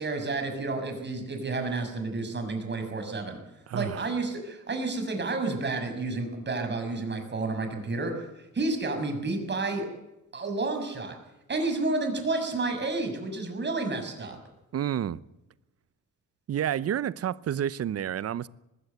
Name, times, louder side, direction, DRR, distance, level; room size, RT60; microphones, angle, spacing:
voice 1, 0.0-3.4 3.7-9.9 10.3-11.1 11.5-14.4, right 3 dB, 35° right, 6.4 m, -30 dB
voice 2, 3.7-4.0 14.7-15.2 16.5-18.5, right 10 dB, 55° right, 0.8 m, -29 dB
20.0 x 16.0 x 8.1 m
cardioid pair, 90°, 30 cm